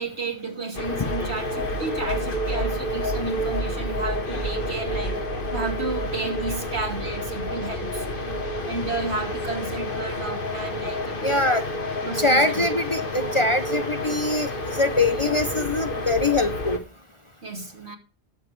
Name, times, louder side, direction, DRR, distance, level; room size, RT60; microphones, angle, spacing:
voice 1, 0.0-5.2 5.5-8.4 8.6-11.4 12.0-12.6 17.4-18.0, right 3 dB, 75° right, 2.9 m, -32 dB
sound 1, 0.7-16.8, left 1 dB, 55° left, 1.7 m, -29 dB
voice 2, 11.2-11.7 12.2-16.8, left 2 dB, 30° left, 0.7 m, -23 dB
20.0 x 7.5 x 3.3 m
omnidirectional pair, 1.1 m